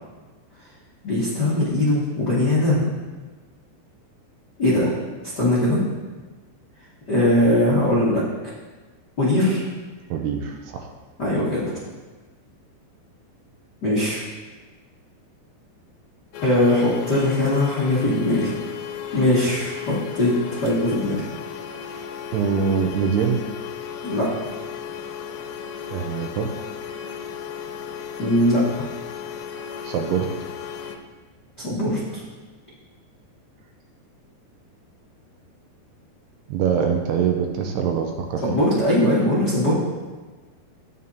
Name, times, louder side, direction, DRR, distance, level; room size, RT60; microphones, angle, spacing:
voice 1, 1.0-2.9 4.6-4.9 5.3-5.8 7.1-8.2 9.2-9.6 11.2-11.6 13.8-14.2 16.4-18.5 19.1-21.3 24.0-24.3 28.2-28.8 31.6-32.0 38.4-39.7, left 1 dB, 60° left, -9 dB, 1.1 m, -20 dB
voice 2, 10.1-10.9 22.3-23.5 25.9-26.7 29.9-30.3 36.5-38.6, right 7 dB, 80° right, 3 dB, 2.6 m, -24 dB
sound 1, 16.3-31.0, left 8 dB, 85° left, 2.6 m, -34 dB
11.5 x 9.3 x 2.8 m, 1.3 s
omnidirectional pair, 5.0 m